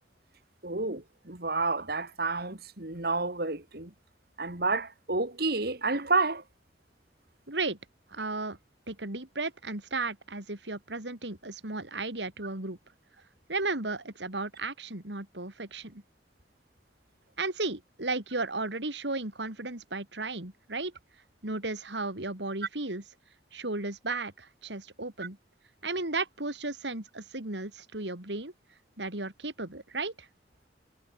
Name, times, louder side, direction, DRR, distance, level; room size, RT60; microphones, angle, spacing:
voice 1, 0.6-3.9 4.4-6.4, right 3 dB, 60° right, 2.8 m, -30 dB
voice 2, 7.5-7.8 8.1-8.6 8.9-12.8 13.5-16.0 17.4-20.9 21.4-23.0 23.5-25.4 25.8-28.5 29.0-30.3, right 3 dB, 80° right, 3.7 m, -34 dB
head